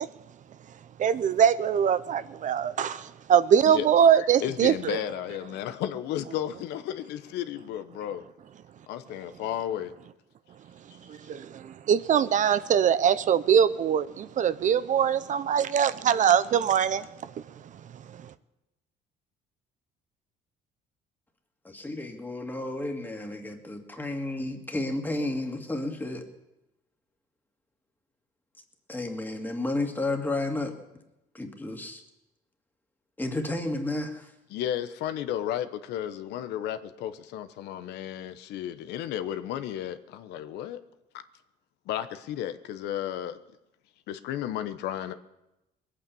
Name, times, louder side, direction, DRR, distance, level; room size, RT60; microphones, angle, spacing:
voice 1, 1.0-5.0 11.1-17.3 18.1-18.3, right 8 dB, 50° right, 14 dB, 0.6 m, -23 dB
voice 2, 4.1-8.2 8.9-9.9 34.5-40.8 41.9-43.4 44.1-45.1, left 11 dB, 85° left, 11 dB, 0.9 m, -33 dB
voice 3, 21.6-26.2 28.9-30.7 31.3-32.0 33.2-34.3, left 2 dB, 10° left, 3 dB, 2.1 m, -32 dB
20.5 x 8.9 x 7.0 m, 0.92 s
cardioid pair, 110°, 17 cm